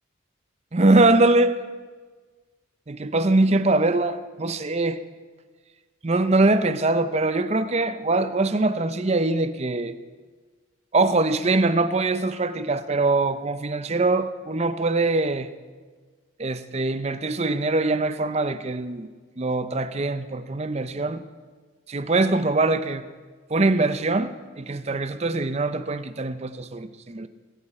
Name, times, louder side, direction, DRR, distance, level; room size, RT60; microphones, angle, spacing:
voice 1, 0.7-1.5 2.9-5.0 6.0-10.0 10.9-15.5 16.4-19.1 19.4-21.2 21.9-23.0 23.5-27.3, right 2 dB, 30° right, 11 dB, 0.6 m, -22 dB
23.5 x 8.9 x 4.3 m, 1.4 s
head